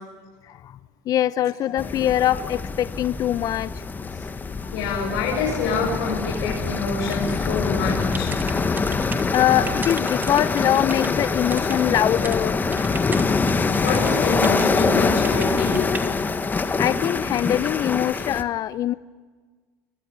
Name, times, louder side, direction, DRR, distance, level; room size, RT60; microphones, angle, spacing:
voice 1, 1.1-3.7 4.6-4.7 9.3-12.6 16.8-18.9, left 12 dB, 45° left, 15 dB, 0.7 m, -23 dB
sound 1, 1.8-18.4, left 4 dB, 20° left, 1.6 m, -24 dB
voice 2, 4.7-8.3 13.5-15.9, left 4 dB, 75° left, -1 dB, 6.8 m, -27 dB
sound 2, 7.1-12.4 12.7-14.8 15.2-16.1, right 4 dB, 25° right, 2.9 m, -37 dB
24.0 x 21.0 x 9.8 m, 1.4 s
hypercardioid pair, 90°, 8 cm